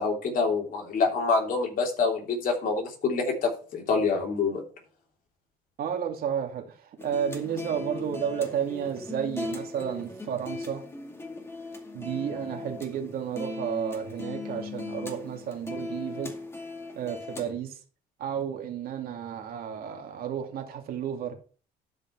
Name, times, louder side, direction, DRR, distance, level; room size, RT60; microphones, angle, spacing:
voice 1, 0.0-4.6, left 4 dB, 55° left, 3.3 m, -26 dB
voice 2, 5.8-10.8 11.9-16.3 16.9-17.8 18.2-21.3, right 8 dB, 65° right, 2.6 m, -32 dB
sound 1, 7.0-17.5, left 3 dB, 15° left, 2.2 m, -38 dB
12.0 x 5.2 x 4.6 m
cardioid pair, 110°, 17 cm